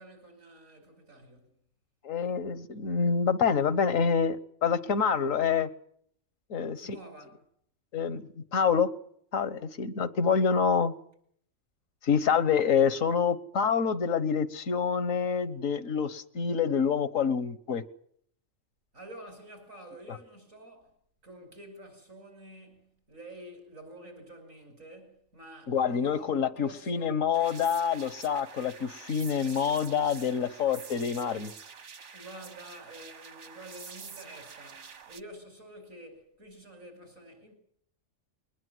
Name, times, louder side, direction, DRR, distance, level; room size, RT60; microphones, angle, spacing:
voice 1, 0.0-1.5 6.8-7.4 18.9-20.9 21.2-27.2 32.1-37.6, right 1 dB, 90° right, 5.5 m, -49 dB
voice 2, 2.0-5.7 6.5-7.0 7.9-8.9 9.3-10.9 12.0-17.8 20.1-20.2 25.7-31.5, left 6 dB, 85° left, 1.6 m, -27 dB
sound 1, 27.3-35.2, right 6 dB, 65° right, 1.7 m, -47 dB
22.0 x 19.5 x 7.9 m
omnidirectional pair, 1.3 m